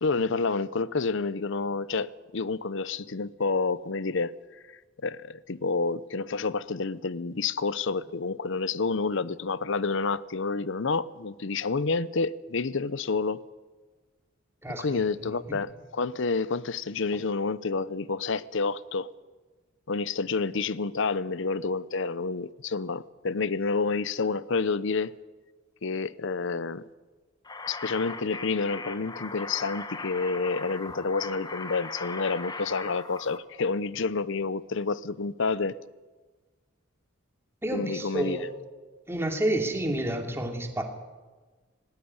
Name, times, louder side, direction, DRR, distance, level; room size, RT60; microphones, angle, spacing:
voice 1, 0.0-4.3 5.0-13.4 14.7-19.1 19.9-25.1 25.8-26.8 27.7-35.8 37.7-38.4, left 4 dB, 65° left, 0.7 m, -29 dB
voice 2, 14.6-15.6 37.6-38.5 39.1-40.8, right 1 dB, 15° right, 2.7 m, -30 dB
sound 1, 27.4-33.4, left 3 dB, 20° left, 1.1 m, -39 dB
18.5 x 17.5 x 9.8 m
head